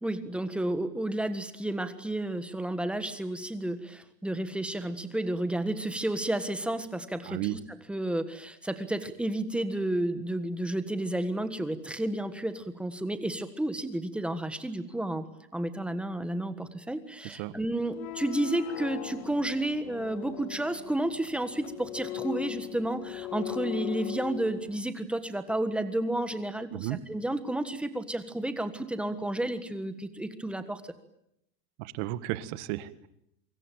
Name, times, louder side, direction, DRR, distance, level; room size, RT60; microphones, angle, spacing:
voice 1, 0.0-7.6 7.9-15.3 15.5-30.9, right 1 dB, ahead, 10 dB, 1.5 m, -31 dB
voice 2, 7.2-7.6 17.2-17.5 26.7-27.0 31.8-33.1, right 16 dB, 40° right, 14 dB, 1.7 m, -34 dB
sound 1, 17.9-24.8, left 14 dB, 55° left, 1.5 m, -39 dB
26.0 x 25.0 x 9.2 m, 0.79 s
supercardioid pair, 160°, 49 cm